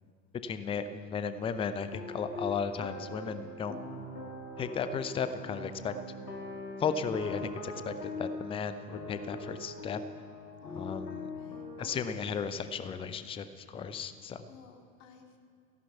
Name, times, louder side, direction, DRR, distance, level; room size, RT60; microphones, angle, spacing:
voice 1, 0.4-3.8 4.6-5.9 6.8-10.0 10.7-11.3 11.8-14.4, left 6 dB, 10° left, 12 dB, 0.6 m, -35 dB
sound 1, 1.9-12.2, left 2 dB, 80° left, 2.2 m, -42 dB
voice 2, 11.3-12.3 14.5-15.4, left 4 dB, 50° left, 3 dB, 2.4 m, -52 dB
16.0 x 11.0 x 8.2 m, 2.3 s
figure-of-eight pair, 85°, 48 cm